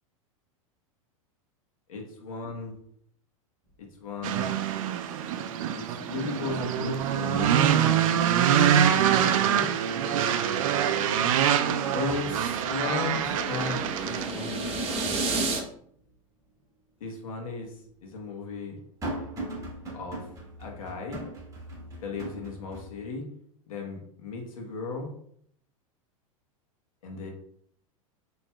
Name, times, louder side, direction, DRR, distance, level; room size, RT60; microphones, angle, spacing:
voice 1, 1.9-2.8 3.8-4.5 5.7-8.0 8.5-9.7 11.9-15.2 17.0-18.8 19.9-20.3 20.6-21.2 22.0-23.2 23.7-25.1 27.0-27.3, left 3 dB, 75° left, 1 dB, 1.1 m, -36 dB
sound 1, 3.7-3.8 4.2-4.7 5.1-5.9 6.2-8.4 8.8-8.9 10.4-10.5 11.0-16.1 16.5-16.6 17.5-22.9, right 1 dB, 20° right, 1.4 m, -42 dB
sound 2, 4.2-14.3, right 9 dB, 70° right, 0.4 m, -25 dB
sound 3, 12.2-15.6, right 3 dB, 35° right, 0.9 m, -32 dB
4.4 x 2.9 x 2.3 m, 0.66 s
hypercardioid pair, 110°, 18 cm